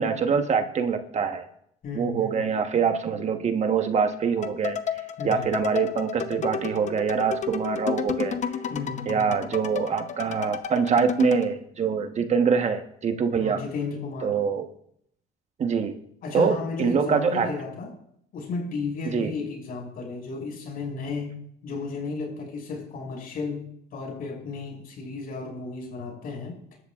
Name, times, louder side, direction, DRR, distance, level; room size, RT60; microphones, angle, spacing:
voice 1, 0.0-1.5 1.9-4.8 5.2-8.4 9.1-13.6 14.2-14.7 15.6-16.0 16.3-17.5 19.1-19.3, right 6 dB, 40° right, 6 dB, 1.2 m, -24 dB
voice 2, 1.8-2.5 5.2-5.5 8.7-9.3 13.4-14.4 16.2-17.9 18.3-21.4 21.6-26.6, left 4 dB, 60° left, 0 dB, 5.9 m, -34 dB
sound 1, 4.4-11.5, left 7 dB, 45° left, 0.9 m, -32 dB
24.0 x 12.5 x 2.5 m, 0.70 s
cardioid pair, 110°, 17 cm